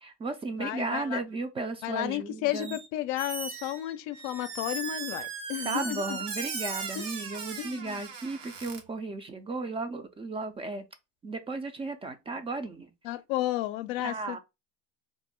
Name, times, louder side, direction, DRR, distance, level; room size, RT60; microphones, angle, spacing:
voice 1, 0.0-2.8 5.6-10.9 11.2-12.9 14.0-14.4, right 3 dB, 20° right, 0.4 m, -35 dB
voice 2, 0.6-1.2 1.8-6.2 7.0-7.1 7.6-8.0 13.0-14.4, left 15 dB, 70° left, 0.5 m, -33 dB
Squeak, 2.5-2.9 3.2-8.8, right 5 dB, 80° right, 1.0 m, -38 dB
2.6 x 2.0 x 3.6 m
supercardioid pair, 115°, 31 cm